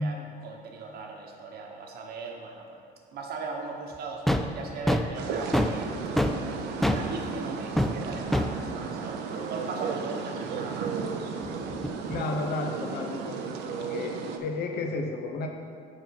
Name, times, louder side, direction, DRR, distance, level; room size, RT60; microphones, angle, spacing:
voice 1, 0.0-2.8 3.1-5.9 6.3-11.0, right 4 dB, 65° right, 1 dB, 1.1 m, -39 dB
sound 1, 4.3-4.5 4.9-5.8 6.2-6.4 6.8-7.1 7.8-8.0 8.3-8.5 11.4-12.2, left 1 dB, ahead, 0.3 m, -25 dB
sound 2, 5.1-14.4, right 5 dB, 85° right, 0.6 m, -34 dB
voice 2, 12.1-13.4 13.7-15.5, left 2 dB, 70° left, 4 dB, 0.9 m, -32 dB
6.5 x 4.4 x 5.9 m, 2.3 s
cardioid pair, 110°, 17 cm